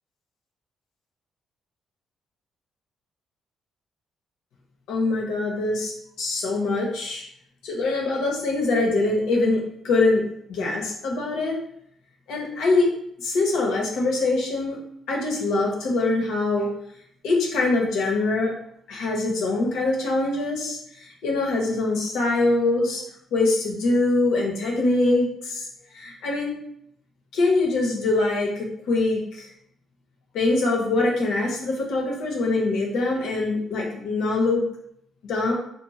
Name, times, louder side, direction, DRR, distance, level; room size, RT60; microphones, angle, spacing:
voice 1, 4.9-5.9 6.2-7.2 7.6-10.2 10.5-11.6 12.3-12.9 13.2-14.8 15.1-16.7 17.2-18.5 18.9-23.0 23.3-25.7 25.9-26.5 27.3-29.5 30.3-34.6 35.2-35.5, left 2 dB, 85° left, -1 dB, 0.7 m, -23 dB
2.6 x 2.0 x 3.0 m, 0.72 s
cardioid pair, 90°, 0 cm